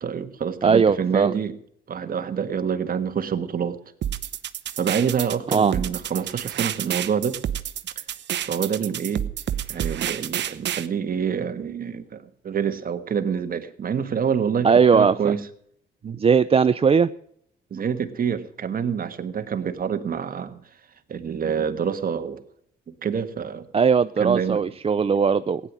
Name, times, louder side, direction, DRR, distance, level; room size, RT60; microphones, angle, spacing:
voice 1, 0.0-1.5 1.9-3.8 4.8-7.4 8.5-9.2 9.7-15.4 16.0-16.2 17.7-20.6 21.1-22.4 22.9-23.6 24.2-24.6, right 7 dB, 45° right, 8 dB, 1.6 m, -27 dB
voice 2, 0.6-1.3 5.5-5.7 14.6-15.3 16.2-17.1 23.7-25.6, right 6 dB, 30° right, 12 dB, 0.5 m, -19 dB
sound 1, 4.0-10.9, right 10 dB, 60° right, 1.0 m, -29 dB
16.5 x 9.9 x 6.1 m, 0.68 s
cardioid pair, 90°, 20 cm